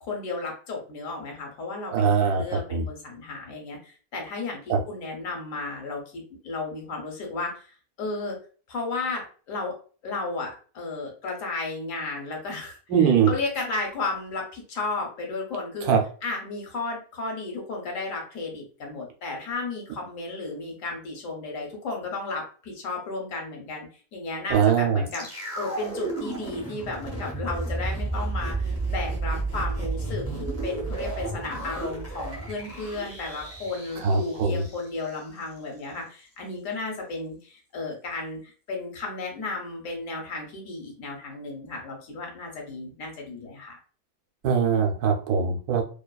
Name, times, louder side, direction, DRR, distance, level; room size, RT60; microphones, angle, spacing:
voice 1, 0.0-8.4 8.7-9.7 10.0-15.9 16.2-43.8, left 3 dB, 65° left, 0 dB, 1.0 m, -34 dB
voice 2, 1.9-2.8 4.7-4.8 12.9-13.3 15.8-16.0 24.5-25.0 34.0-34.6 44.4-45.8, right 6 dB, 80° right, 3 dB, 1.1 m, -22 dB
sound 1, 25.1-35.2 35.5-35.6, right 2 dB, 25° left, 0.3 m, -32 dB
2.7 x 2.3 x 2.2 m, 0.39 s
omnidirectional pair, 1.6 m